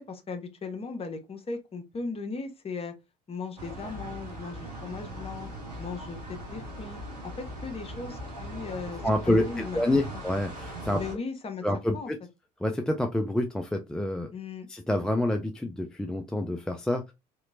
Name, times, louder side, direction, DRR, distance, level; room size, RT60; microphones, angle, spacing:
voice 1, 0.0-2.9 3.3-5.5 5.8-9.1 9.5-9.8 11.0-11.6 11.9-12.1 14.3-14.7, left 4 dB, 30° left, 0.9 m, -37 dB
sound 1, 3.6-11.2, right 1 dB, 85° right, 0.9 m, -40 dB
voice 2, 9.0-11.0 11.6-12.2 12.6-14.3 14.7-17.1, left 1 dB, 5° left, 0.4 m, -27 dB
3.0 x 2.8 x 2.5 m
figure-of-eight pair, 55°, 20 cm